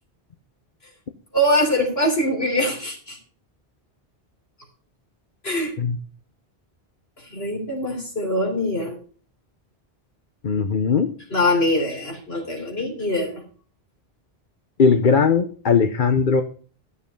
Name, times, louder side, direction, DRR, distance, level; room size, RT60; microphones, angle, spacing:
voice 1, 1.3-3.2 5.4-5.7 7.2-9.0 11.3-13.4, left 1 dB, 75° left, 0 dB, 4.1 m, -23 dB
voice 2, 10.4-11.1 14.8-16.4, left 5 dB, 55° left, 8 dB, 1.0 m, -18 dB
13.5 x 7.0 x 5.4 m, 0.42 s
omnidirectional pair, 1.1 m